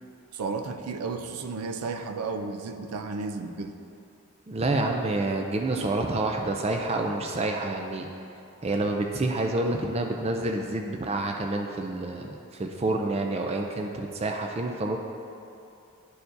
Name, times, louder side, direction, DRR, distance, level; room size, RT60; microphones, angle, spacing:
voice 1, 0.3-3.7, right 4 dB, 90° right, 7 dB, 0.4 m, -33 dB
voice 2, 4.5-8.1 8.6-15.0, right 2 dB, 25° right, 3 dB, 0.3 m, -28 dB
11.5 x 4.6 x 2.6 m, 2.6 s
head